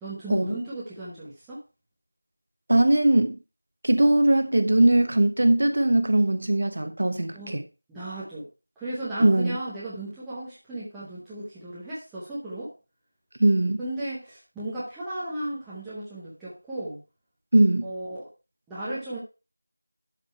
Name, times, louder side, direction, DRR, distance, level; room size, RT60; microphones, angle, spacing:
voice 1, 0.0-1.6 7.3-7.6 7.9-8.5 8.8-12.7 13.8-17.0 17.8-18.3 18.7-19.2, right 1 dB, ahead, 0.8 m, -35 dB
voice 2, 2.7-3.3 3.8-7.6 9.2-9.6 13.4-13.8 17.5-17.9, right 1 dB, 30° right, 0.9 m, -20 dB
11.5 x 4.9 x 4.4 m
figure-of-eight pair, 180°, 0 cm